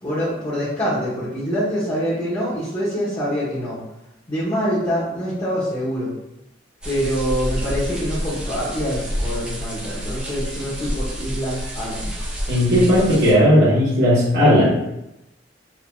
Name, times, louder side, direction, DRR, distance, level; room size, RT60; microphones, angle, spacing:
voice 1, 0.0-3.8 4.3-6.1 6.8-12.1, equal, 25° left, -11 dB, 1.0 m, -25 dB
sound 1, 6.8-13.3, equal, 5° right, 0.6 m, -28 dB
voice 2, 12.5-14.8, equal, 85° right, -10 dB, 1.3 m, -15 dB
4.4 x 2.8 x 2.2 m, 0.88 s
head